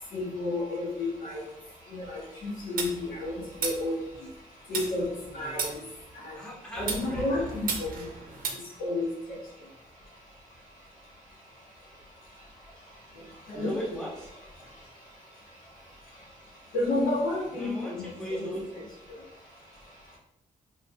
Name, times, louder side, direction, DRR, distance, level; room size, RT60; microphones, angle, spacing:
voice 1, 0.1-1.4 1.9-3.3 3.6-3.9 4.7-5.1 5.3-5.7 6.2-6.3 6.8-7.9 8.8-9.1 13.5-13.8 16.7-18.5, left 2 dB, 80° left, -4 dB, 1.3 m, -30 dB
sound 1, 2.8-4.4 4.7-6.3 6.8-8.5, right 5 dB, 80° right, 0.6 m, -35 dB
voice 2, 5.3-5.8 6.3-7.5 8.3-8.6 13.5-14.3 17.5-18.9, equal, 5° left, -6 dB, 1.1 m, -39 dB
4.9 x 2.6 x 2.2 m, 0.84 s
wide cardioid pair, 125°, 14 cm